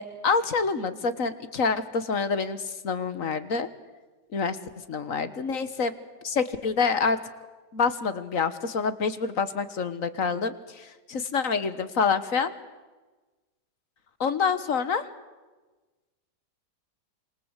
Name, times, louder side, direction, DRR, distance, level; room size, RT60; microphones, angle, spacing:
voice 1, 0.0-3.7 4.3-4.6 4.9-5.9 6.2-7.2 7.7-12.5 14.2-15.1, left 5 dB, 55° left, 12 dB, 1.7 m, -27 dB
27.0 x 26.5 x 8.2 m, 1.2 s
omnidirectional pair, 1.8 m